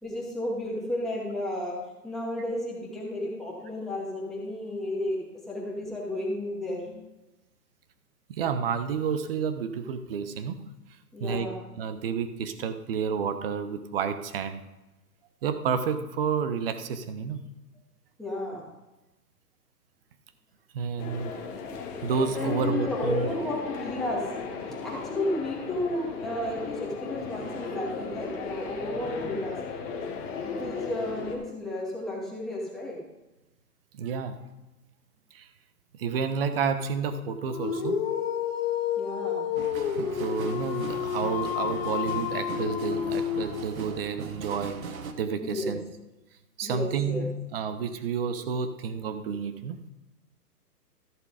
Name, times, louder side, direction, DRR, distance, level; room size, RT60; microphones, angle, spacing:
voice 1, 0.0-5.2 5.5-7.0 11.1-11.6 18.2-18.6 22.3-24.3 24.8-29.6 30.4-33.0 39.0-39.4 45.4-45.8 46.6-47.3, left 1 dB, ahead, -6 dB, 2.3 m, -32 dB
voice 2, 8.3-10.6 11.2-11.5 11.8-14.6 15.4-17.4 20.7-21.3 22.0-23.3 33.9-34.4 35.3-35.4 36.0-38.0 40.0-44.8 45.2-45.8 46.6-49.8, right 6 dB, 35° right, 10 dB, 0.9 m, -30 dB
sound 1, 21.0-31.4, left 5 dB, 20° left, 1.2 m, -36 dB
Dog, 37.5-43.9, left 9 dB, 40° left, 0.9 m, -30 dB
sound 2, 39.6-45.1, right 5 dB, 60° right, 1.3 m, -39 dB
14.0 x 6.7 x 4.9 m, 1.0 s
hypercardioid pair, 145°, 47 cm